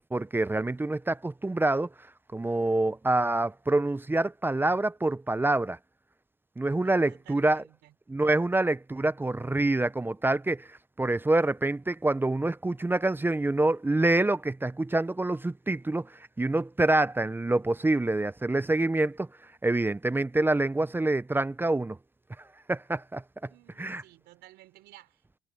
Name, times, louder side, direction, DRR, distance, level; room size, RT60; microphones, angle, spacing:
voice 1, 0.1-1.9 2.3-5.8 6.6-7.6 8.1-19.3 19.6-22.0 22.7-23.5 23.8-24.0, right 2 dB, 10° right, 0.7 m, -26 dB
voice 2, 6.8-7.9 23.5-25.4, right 16 dB, 75° right, 4.7 m, -55 dB
supercardioid pair, 90°, 18 cm